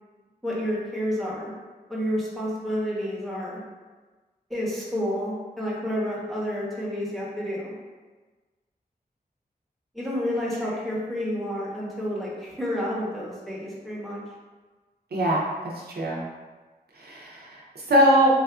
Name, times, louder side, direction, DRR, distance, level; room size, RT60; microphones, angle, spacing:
voice 1, 0.4-1.5 1.9-3.6 4.5-7.7 9.9-14.2, equal, ahead, -7 dB, 0.8 m, -30 dB
voice 2, 15.1-15.4 15.9-16.2 16.9-18.3, equal, 70° right, -4 dB, 0.6 m, -22 dB
3.4 x 2.3 x 2.3 m, 1.3 s
wide cardioid pair, 75°, 17 cm